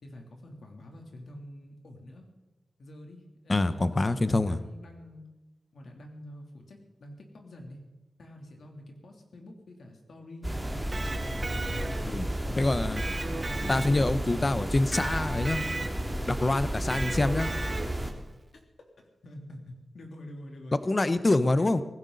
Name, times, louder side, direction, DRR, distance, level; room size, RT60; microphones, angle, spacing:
voice 1, 0.0-2.3 2.8-5.2 5.7-7.8 8.2-10.8 11.5-12.6 13.2-14.1 16.6-16.9 18.5-18.6 19.2-20.8 21.0-21.7, left 1 dB, 75° left, 2 dB, 3.3 m, -47 dB
voice 2, 3.5-4.6 12.0-12.3 12.6-13.1 13.7-15.7 16.3-17.5 20.8-21.8, left 2 dB, 30° left, 12 dB, 0.9 m, -25 dB
sound 1, 10.4-18.1, right 1 dB, 10° right, 2.5 m, -32 dB
Electric guitar, 10.7-12.3 13.0-14.4 14.9-16.2 16.9-18.1, right 2 dB, 35° right, 1.3 m, -37 dB
18.5 x 16.0 x 4.1 m, 1.1 s
wide cardioid pair, 90°, 0 cm